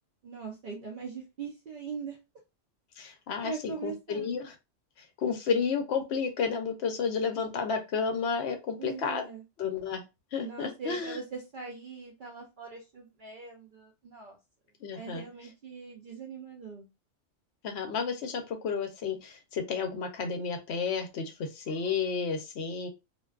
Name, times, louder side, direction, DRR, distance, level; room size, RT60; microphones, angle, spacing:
voice 1, 0.2-2.2 3.4-4.3 8.8-9.4 10.4-14.4 14.9-16.9, right 4 dB, 60° right, 0 dB, 0.6 m, -41 dB
voice 2, 3.0-4.6 5.0-9.2 9.6-10.0 10.3-11.2 14.8-15.2 17.6-22.9, left 5 dB, 65° left, 6 dB, 0.8 m, -32 dB
2.5 x 2.2 x 2.3 m, 0.25 s
omnidirectional pair, 1.3 m